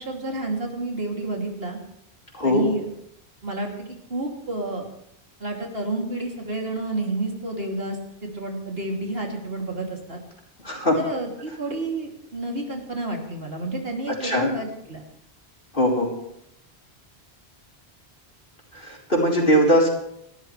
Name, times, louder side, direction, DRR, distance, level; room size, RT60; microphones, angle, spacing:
voice 1, 0.0-1.8 2.4-2.9 3.4-3.7 4.1-4.9 5.4-8.0 8.2-10.2 10.9-15.0, right 2 dB, 65° right, 0 dB, 3.3 m, -30 dB
voice 2, 10.6-11.0 14.1-14.5 15.7-16.1 18.7-19.9, equal, 55° left, -2 dB, 4.5 m, -20 dB
30.0 x 13.0 x 3.4 m, 0.78 s
omnidirectional pair, 1.1 m